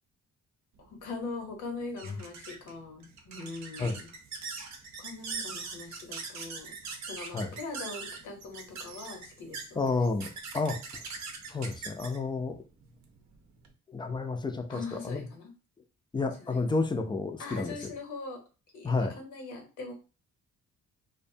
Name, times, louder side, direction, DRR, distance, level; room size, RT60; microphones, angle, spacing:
voice 1, 0.8-4.1 5.0-9.8 14.7-15.5 16.4-16.7 17.4-18.4 18.7-19.9, left 3 dB, 80° left, 2 dB, 0.9 m, -41 dB
sound 1, 0.8-13.7, right 4 dB, 65° right, 0.6 m, -42 dB
voice 2, 9.8-10.3 10.5-10.8 11.5-12.6 13.9-15.2 16.1-17.8 18.8-19.1, left 3 dB, 15° left, 7 dB, 0.4 m, -30 dB
2.5 x 2.1 x 2.7 m, 0.33 s
cardioid pair, 90°, 30 cm